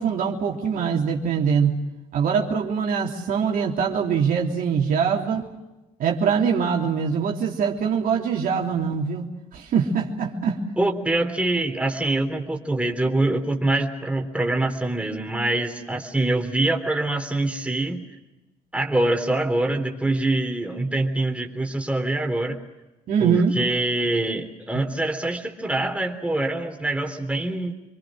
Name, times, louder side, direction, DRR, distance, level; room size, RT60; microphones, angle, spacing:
voice 1, 0.0-1.7 2.1-5.5 6.0-9.3 9.5-10.6 23.1-23.5, right 6 dB, 60° right, 0 dB, 3.4 m, -23 dB
voice 2, 10.8-18.1 18.7-22.6 23.2-27.7, right 2 dB, 10° right, 3 dB, 3.6 m, -24 dB
27.5 x 23.5 x 6.4 m, 1.0 s
hypercardioid pair, 60°, 16 cm